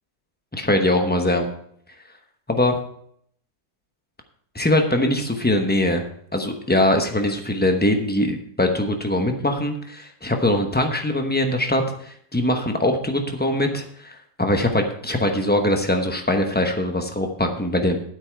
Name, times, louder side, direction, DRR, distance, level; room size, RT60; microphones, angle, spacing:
voice 1, 0.5-1.5 2.5-2.8 4.5-6.0 6.3-18.0, left 1 dB, 10° left, 4 dB, 0.4 m, -22 dB
9.6 x 8.6 x 4.6 m, 0.66 s
omnidirectional pair, 2.0 m